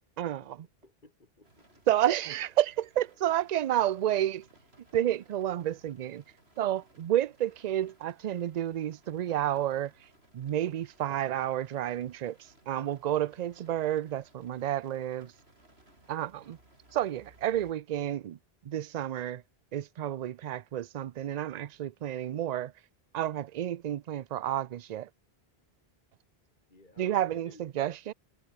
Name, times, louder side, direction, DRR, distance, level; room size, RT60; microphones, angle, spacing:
voice 1, 0.2-0.7 1.9-4.5 4.9-6.2 6.6-9.9 10.3-15.3 16.1-16.6 16.9-18.4 18.6-19.4 19.7-22.7 23.1-25.1 27.0-28.1, right 12 dB, 55° right, 0.5 m, -30 dB
voice 2, 0.8-1.8 26.7-27.6, left 2 dB, 50° left, 3.6 m, -55 dB
sound 1, 1.4-17.7, right 1 dB, 90° right, 6.6 m, -62 dB
omnidirectional pair, 1.0 m